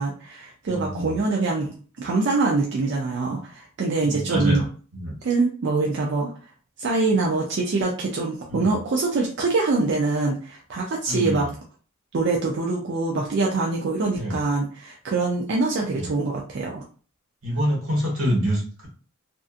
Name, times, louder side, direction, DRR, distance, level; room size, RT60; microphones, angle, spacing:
voice 1, 0.0-4.6 5.2-6.3 6.8-11.5 12.1-16.8, right 3 dB, 55° right, -1 dB, 0.4 m, -24 dB
voice 2, 0.7-1.2 4.0-4.6 4.9-5.2 8.5-8.7 11.1-11.5 14.1-14.4 15.9-16.1 17.4-18.9, equal, 85° right, -2 dB, 1.2 m, -26 dB
2.5 x 2.4 x 2.4 m, 0.40 s
head